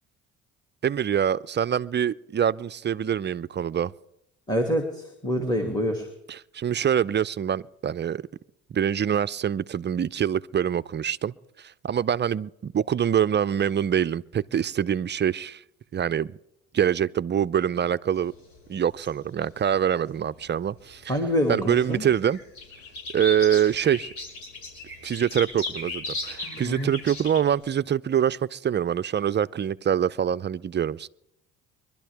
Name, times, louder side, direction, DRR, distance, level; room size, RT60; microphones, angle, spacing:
voice 1, 0.8-3.9 6.3-8.2 8.7-15.6 15.9-16.4 16.7-18.3 18.7-21.2 21.5-22.4 23.1-24.1 25.0-31.1, right 9 dB, 30° right, 0.5 m, -25 dB
voice 2, 4.5-6.1 21.1-22.0 26.4-26.9, equal, 10° left, 2.3 m, -26 dB
sound 1, 18.2-20.7 21.1-27.6, left 2 dB, 80° left, 5.3 m, -37 dB
24.0 x 12.0 x 3.5 m
hypercardioid pair, 70°, 40 cm